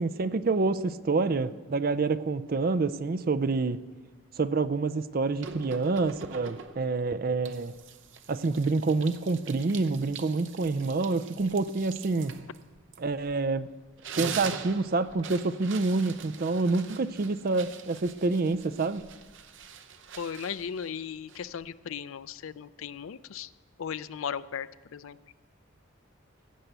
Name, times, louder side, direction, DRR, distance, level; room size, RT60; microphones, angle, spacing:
voice 1, 0.0-3.8 4.4-7.7 8.3-12.3 13.0-13.7 14.2-19.0, right 3 dB, 45° right, 13 dB, 0.4 m, -27 dB
sound 1, 5.4-6.9 7.4-13.5 13.8-21.7, right 6 dB, 65° right, 0.8 m, -43 dB
voice 2, 20.2-23.5 23.8-25.2, left 7 dB, 80° left, 16 dB, 0.4 m, -37 dB
16.5 x 6.8 x 8.0 m, 1.3 s
head